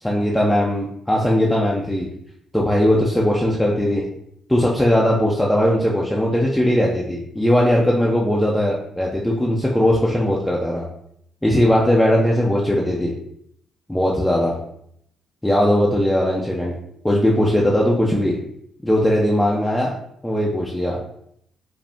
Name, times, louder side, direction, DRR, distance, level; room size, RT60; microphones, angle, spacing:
voice 1, 0.0-2.0 2.5-4.1 4.5-10.9 11.4-13.1 13.9-14.6 15.4-16.7 17.0-18.4 18.8-20.0 20.2-21.0, equal, 5° left, -3 dB, 0.6 m, -19 dB
4.9 x 2.0 x 3.5 m, 0.72 s
cardioid pair, 90°, 0 cm